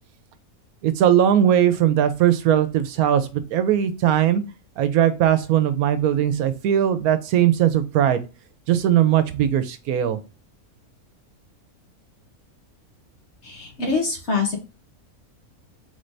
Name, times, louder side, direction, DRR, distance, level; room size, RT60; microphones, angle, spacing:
voice 1, 0.8-4.4 4.8-8.2 8.7-10.2, right 10 dB, 80° right, 11 dB, 1.1 m, -19 dB
voice 2, 13.4-14.6, left 4 dB, 50° left, 2 dB, 1.5 m, -24 dB
3.6 x 3.3 x 3.9 m, 0.31 s
omnidirectional pair, 1.6 m